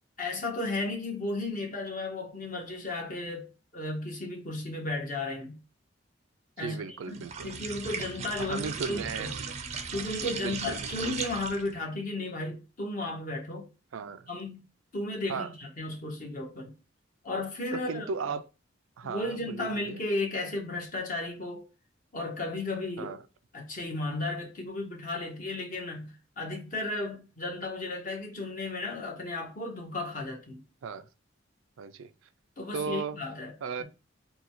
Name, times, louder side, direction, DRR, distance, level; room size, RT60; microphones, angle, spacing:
voice 1, 0.2-5.6 6.6-6.8 7.1-9.3 9.9-13.7 14.3-14.6 14.9-16.7 17.2-18.1 19.0-21.6 22.1-23.1 23.5-30.6 32.6-33.5, left 2 dB, 40° left, 1.2 m, -34 dB
voice 2, 6.6-7.5 8.4-9.6 10.4-11.2 13.9-14.3 15.3-15.5 17.7-18.5 19.0-20.0 23.0-23.2 30.8-31.1 31.8-32.1 32.7-33.2 33.6-33.8, right 5 dB, 90° right, 0.4 m, -36 dB
sound 1, 7.1-11.8, right 5 dB, 35° right, 0.5 m, -37 dB
3.8 x 2.3 x 4.4 m
head